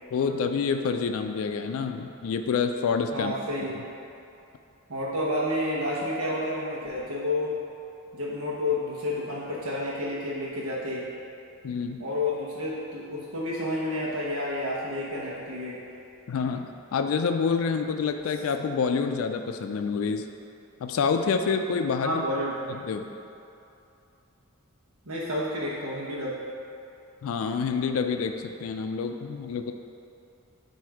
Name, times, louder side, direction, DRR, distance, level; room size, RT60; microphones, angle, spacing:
voice 1, 0.1-3.3 11.6-12.0 16.3-20.2 20.8-22.2 22.8-23.0 27.2-29.7, left 5 dB, 70° left, 6 dB, 0.3 m, -27 dB
voice 2, 3.1-3.8 4.9-7.6 8.1-11.1 12.0-15.8 22.0-22.5 25.0-26.4, left 1 dB, 85° right, -6 dB, 0.9 m, -30 dB
7.5 x 2.7 x 4.7 m, 2.7 s
head